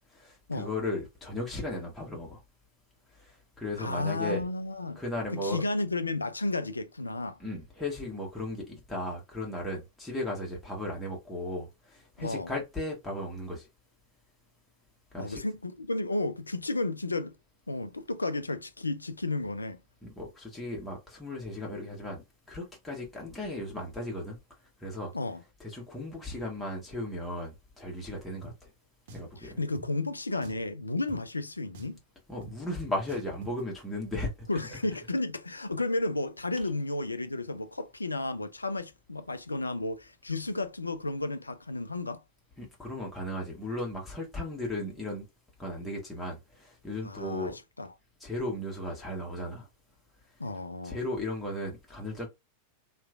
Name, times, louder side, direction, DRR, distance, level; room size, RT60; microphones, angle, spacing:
voice 1, 0.1-2.4 3.1-4.4 4.9-5.6 7.4-13.7 15.1-15.4 20.0-24.4 24.8-25.1 25.6-28.7 29.1-29.6 32.3-34.8 42.6-45.3 45.6-47.6 48.2-49.7 50.8-52.3, left 1 dB, 5° left, 1.1 m, -36 dB
voice 2, 3.8-5.0 5.3-7.4 12.2-12.5 15.2-17.3 17.7-19.8 25.1-25.4 29.4-32.0 34.5-42.2 47.0-47.9 50.4-51.0, left 2 dB, 80° left, 0.4 m, -33 dB
Drum, 28.4-28.6 29.1-29.3 29.7-29.9 30.4-30.7 31.1-31.2 31.7-32.0 32.4-32.6 33.1-33.6, right 3 dB, 55° right, 0.6 m, -46 dB
2.9 x 2.4 x 2.3 m
figure-of-eight pair, 90°, 0 cm